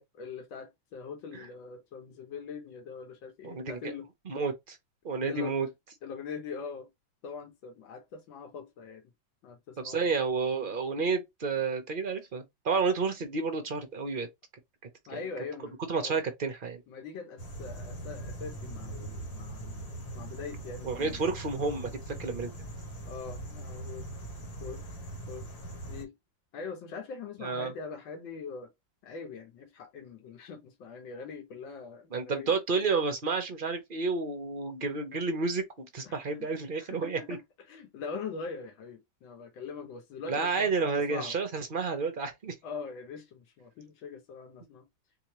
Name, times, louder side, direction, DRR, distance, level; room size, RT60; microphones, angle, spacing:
voice 1, 0.2-4.1 5.3-5.5 6.0-6.9 7.2-9.1 9.4-10.1 15.1-16.2 16.9-19.9 20.1-21.3 23.1-24.1 24.6-24.8 25.3-25.5 25.9-26.2 26.5-28.7 29.0-32.5 36.0-36.2 36.8-37.4 37.7-41.4 42.6-44.9, left 5 dB, 80° left, 1.9 m, -42 dB
voice 2, 3.4-3.9 4.3-4.8 5.0-5.7 9.8-14.3 15.9-16.8 20.8-22.5 27.4-27.7 32.1-37.4 40.3-42.6, right 4 dB, 55° right, 0.5 m, -30 dB
sound 1, 17.4-26.0, right 1 dB, 50° left, 1.7 m, -41 dB
4.0 x 3.6 x 3.0 m
omnidirectional pair, 2.1 m